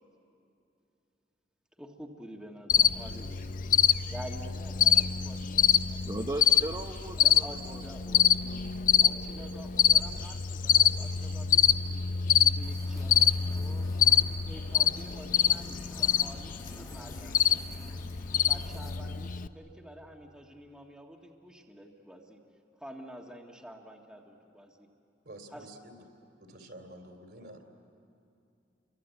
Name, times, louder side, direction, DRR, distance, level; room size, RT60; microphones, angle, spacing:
voice 1, 1.8-3.4 4.1-6.2 6.5-6.6 7.2-8.1 9.0-12.0 12.4-13.9 14.4-17.7 18.5-22.4 22.8-24.9 25.5-25.7, equal, 5° right, 0 dB, 1.7 m, -48 dB
Cricket, 2.7-19.5, left 8 dB, 50° left, 0.5 m, -26 dB
voice 2, 6.1-8.6, right 1 dB, 25° right, 1 dB, 0.9 m, -38 dB
sound 1, 12.6-19.0, left 1 dB, 20° left, 1.3 m, -50 dB
voice 3, 25.2-26.0 26.4-27.6, right 1 dB, 60° right, 5 dB, 3.1 m, -49 dB
29.5 x 23.5 x 8.3 m, 2.6 s
head